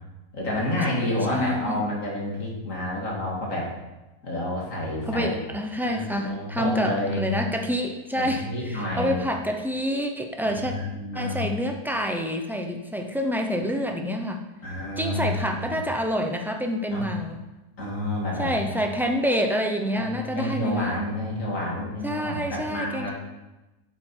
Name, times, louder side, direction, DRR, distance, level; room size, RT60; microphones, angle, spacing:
voice 1, 0.3-3.7 4.2-5.3 5.8-7.2 8.1-9.2 10.4-11.5 14.6-15.8 16.9-17.1 17.8-18.8 19.9-23.1, left 1 dB, 60° left, -3 dB, 2.5 m, -29 dB
voice 2, 0.9-1.8 5.1-10.7 11.1-14.4 15.0-17.4 18.4-21.0 22.0-23.1, equal, 5° right, 3 dB, 0.3 m, -27 dB
8.4 x 7.8 x 4.5 m, 1.0 s
omnidirectional pair, 1.6 m